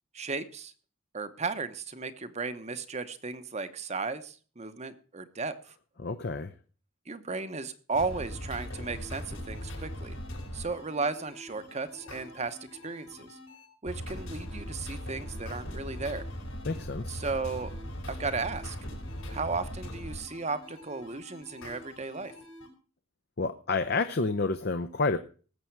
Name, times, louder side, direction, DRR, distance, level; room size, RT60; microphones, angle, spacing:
voice 1, 0.1-0.7 1.1-5.5 7.1-10.2 10.5-12.6 12.8-13.4 13.8-16.3 17.1-17.7 18.1-18.8 19.3-22.3, right 4 dB, 30° right, 1.0 m, -35 dB
voice 2, 6.0-6.5 16.6-17.2 23.4-25.2, left 3 dB, 50° left, 0.7 m, -29 dB
sound 1, 7.9-22.7, equal, 80° left, 5.4 m, -40 dB
19.0 x 7.7 x 4.6 m
head